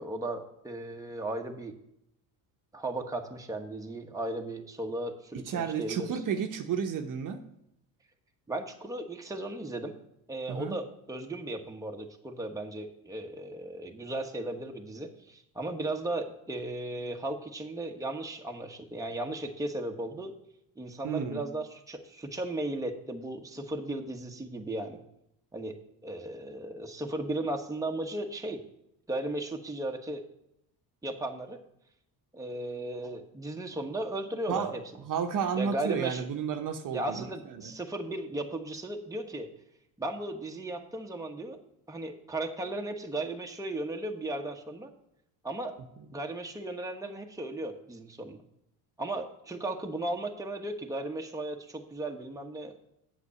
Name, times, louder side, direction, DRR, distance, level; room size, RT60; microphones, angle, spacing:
voice 1, 0.0-1.7 2.7-6.2 8.5-9.9 10.3-20.3 20.8-25.0 25.5-25.8 26.0-28.6 29.1-30.2 31.0-31.6 32.3-34.8 35.6-36.3 36.9-39.5 40.0-41.6 41.9-44.9 45.4-45.8 46.1-48.4 49.0-52.8, right 2 dB, 10° right, 2 dB, 1.2 m, -36 dB
voice 2, 5.5-7.4 10.5-10.8 21.0-21.4 34.5-34.7 35.0-37.7, right 7 dB, 50° right, 6 dB, 1.0 m, -32 dB
8.1 x 6.1 x 7.1 m, 0.78 s
supercardioid pair, 85°, 40 cm